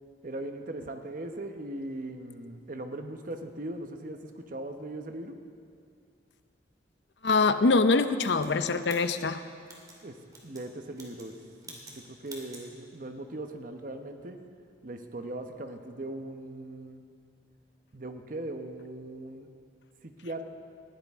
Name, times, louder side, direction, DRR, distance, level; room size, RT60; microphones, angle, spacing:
voice 1, 0.2-5.4 10.0-10.2 10.4-11.3 11.7-14.4 14.8-17.1 17.9-19.5 20.0-20.5, right 1 dB, 50° right, 6 dB, 1.0 m, -39 dB
voice 2, 7.2-9.4, left 3 dB, 70° left, 11 dB, 0.6 m, -24 dB
sound 1, 8.2-10.0 10.3-10.7 10.9-11.3 11.6-12.0 12.2-12.7, right 2 dB, 20° right, 2.3 m, -48 dB
19.5 x 15.0 x 3.6 m, 2.3 s
head